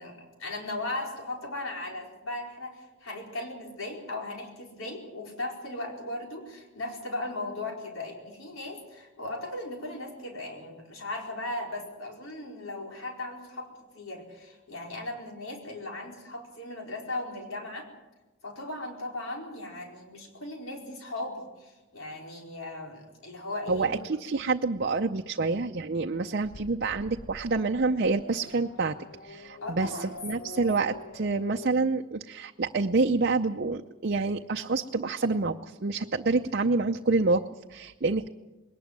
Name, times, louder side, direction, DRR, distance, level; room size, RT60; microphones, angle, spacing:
voice 1, 0.0-13.7 13.9-17.9 18.4-24.0 29.6-30.1, left 2 dB, 90° left, 1 dB, 4.6 m, -37 dB
voice 2, 23.7-29.0 29.2-38.3, right 3 dB, 50° right, 4 dB, 0.6 m, -27 dB
Race car auto racing / Accelerating revving vroom, 26.4-31.7, left 2 dB, 55° left, 1.1 m, -46 dB
21.0 x 19.0 x 7.5 m, 1.1 s
head